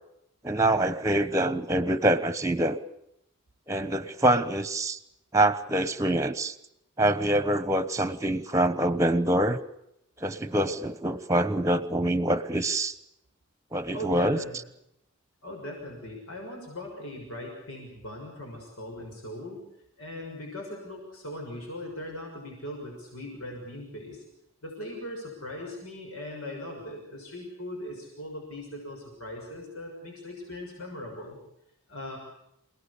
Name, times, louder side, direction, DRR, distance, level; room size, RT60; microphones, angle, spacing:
voice 1, 0.4-2.8 3.7-5.0 5.3-6.5 7.0-9.6 10.2-12.9 13.7-14.4, right 1 dB, 15° right, 13 dB, 1.0 m, -25 dB
voice 2, 13.9-14.6 15.4-19.6 20.0-24.2 24.6-31.4 31.9-32.2, left 1 dB, 90° left, 1 dB, 6.5 m, -39 dB
27.5 x 18.5 x 8.4 m, 0.81 s
head